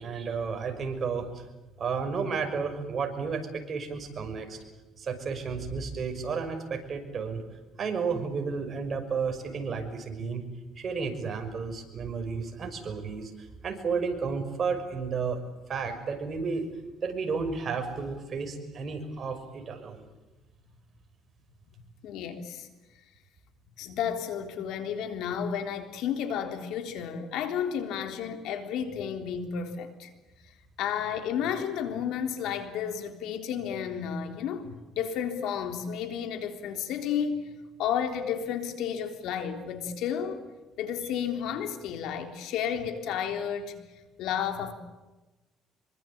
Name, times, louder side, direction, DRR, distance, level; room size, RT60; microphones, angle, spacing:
voice 1, 0.0-1.4 1.8-4.6 5.0-7.4 7.8-10.4 10.8-15.4 15.7-16.7 17.0-20.1, right 5 dB, 40° right, 5 dB, 6.0 m, -32 dB
voice 2, 22.0-22.7 23.8-30.1 30.8-37.5 37.8-40.4 40.8-43.7 44.2-44.7, left 8 dB, 80° left, 6 dB, 3.6 m, -32 dB
26.5 x 23.5 x 8.7 m, 1.1 s
cardioid pair, 110°, 0 cm